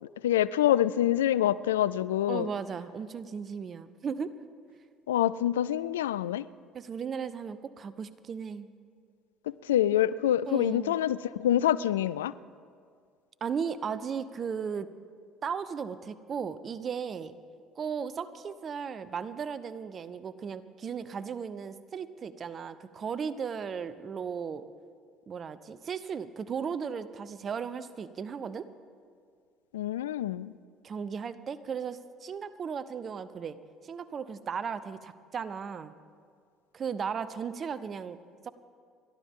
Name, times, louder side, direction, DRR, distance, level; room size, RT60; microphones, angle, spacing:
voice 1, 0.2-2.5 5.1-6.4 9.7-12.3 29.7-30.5, left 12 dB, 90° left, 18 dB, 0.3 m, -26 dB
voice 2, 2.3-4.3 6.7-8.7 10.4-11.0 13.4-14.9 15.4-17.3 17.8-24.6 25.3-28.7 30.8-33.6 33.8-35.9 36.7-38.2 38.4-38.5, right 6 dB, 45° right, 15 dB, 0.8 m, -36 dB
30.0 x 12.0 x 3.7 m, 2.1 s
hypercardioid pair, 65°, 0 cm